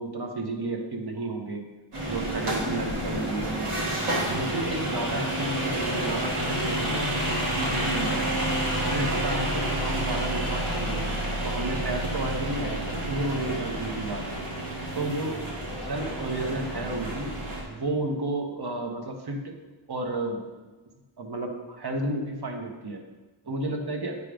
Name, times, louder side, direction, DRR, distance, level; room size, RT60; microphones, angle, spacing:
voice 1, 0.0-1.6 2.1-3.9 4.3-7.2 7.6-8.4 8.9-11.0 11.4-14.4 14.9-15.4 15.8-17.3 17.7-19.6 19.9-20.4 21.2-23.0 23.4-24.2, right 2 dB, 50° right, 3 dB, 1.1 m, -32 dB
sound 1, 1.9-17.6, right 1 dB, 90° right, 1.6 m, -29 dB
8.3 x 3.4 x 5.0 m, 1.2 s
wide cardioid pair, 80°, 49 cm